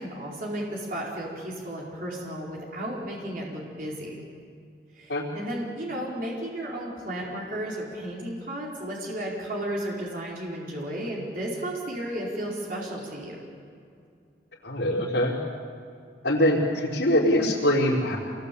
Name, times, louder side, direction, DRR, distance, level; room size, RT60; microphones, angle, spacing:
voice 1, 0.0-4.2 4.9-13.4, right 1 dB, 50° right, -3 dB, 4.7 m, -33 dB
voice 2, 14.6-15.4 16.2-18.2, left 1 dB, 90° left, -9 dB, 4.6 m, -23 dB
27.0 x 21.0 x 8.6 m, 2.4 s
head